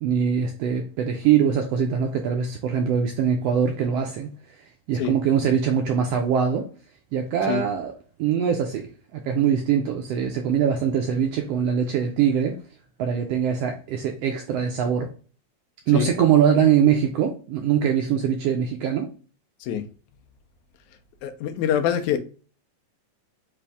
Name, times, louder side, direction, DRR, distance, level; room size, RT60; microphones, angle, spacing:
voice 1, 0.0-4.3 4.9-6.7 7.1-7.9 8.2-12.6 13.0-15.1 15.9-19.1, right 8 dB, 80° right, 1.4 m, -22 dB
voice 2, 21.2-22.2, left 9 dB, 90° left, 2.0 m, -25 dB
5.6 x 2.6 x 3.4 m
omnidirectional pair, 3.4 m